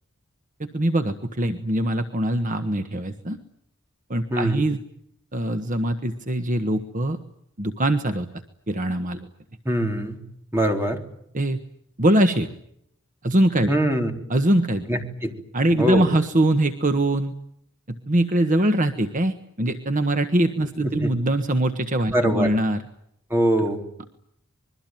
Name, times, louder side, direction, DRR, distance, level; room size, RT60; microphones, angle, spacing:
voice 1, 0.6-3.4 4.1-4.8 5.3-7.2 7.6-8.3 8.7-9.3 11.3-11.6 12.0-12.5 13.2-13.7 14.3-14.8 15.5-17.3 17.9-22.8, right 1 dB, 40° right, 8 dB, 1.4 m, -22 dB
voice 2, 4.3-4.7 9.7-10.2 10.5-11.0 13.7-14.1 14.9-15.3 15.8-16.1 21.0-21.1 22.1-22.5 23.3-23.9, right 1 dB, 10° right, 4 dB, 3.9 m, -22 dB
26.0 x 22.5 x 9.2 m, 0.72 s
head